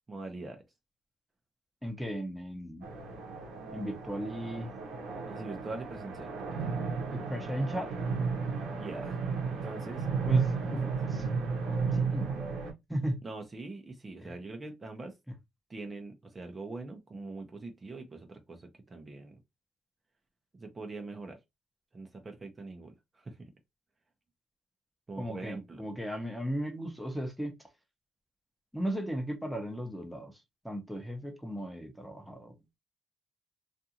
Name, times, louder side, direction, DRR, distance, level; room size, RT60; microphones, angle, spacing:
voice 1, 0.1-0.6 5.3-6.3 8.8-10.1 10.7-11.1 13.2-15.2 15.7-19.4 20.6-21.4 21.9-23.5 25.1-25.8, right 3 dB, 30° right, 0.6 m, -43 dB
voice 2, 1.8-2.9 3.7-4.7 7.1-7.9 10.2-10.5 11.2-11.3 11.7-12.4 12.9-13.2 14.2-14.3 25.2-27.5 28.7-32.5, equal, ahead, 0.8 m, -36 dB
sound 1, 2.8-12.7, right 5 dB, 85° right, 0.8 m, -33 dB
2.5 x 2.4 x 2.8 m
cardioid pair, 90°, 0 cm